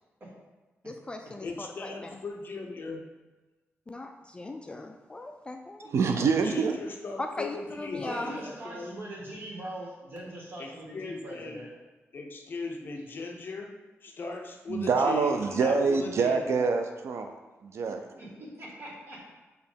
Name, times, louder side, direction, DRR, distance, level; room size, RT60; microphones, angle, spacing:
voice 1, 0.8-2.2 3.9-5.9 7.2-8.3, left 2 dB, 20° left, 4 dB, 0.4 m, -38 dB
voice 2, 1.4-3.1 6.4-9.0 10.6-11.6 12.1-13.7 14.0-16.6, left 3 dB, 45° left, 2 dB, 0.8 m, -38 dB
voice 3, 5.9-6.8 14.7-17.3 17.6-18.1, right 5 dB, 70° right, 5 dB, 0.4 m, -26 dB
voice 4, 7.9-11.7 18.2-19.2, right 1 dB, 45° right, -3 dB, 1.9 m, -41 dB
6.6 x 3.0 x 5.2 m, 1.2 s
wide cardioid pair, 125°, 5 cm